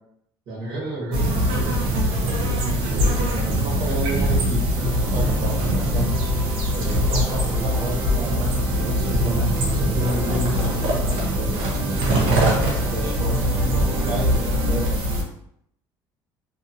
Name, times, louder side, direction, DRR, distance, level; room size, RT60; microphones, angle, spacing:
voice 1, 0.5-2.0 2.7-6.1 6.7-11.6 12.2-15.0, right 1 dB, 50° right, -5 dB, 1.2 m, -31 dB
sound 1, 1.1-15.2, equal, 75° right, 0.7 m, -22 dB
sound 2, 4.7-14.9, equal, 15° right, 0.5 m, -33 dB
2.7 x 2.6 x 2.5 m, 0.71 s
cardioid pair, 180°, 9 cm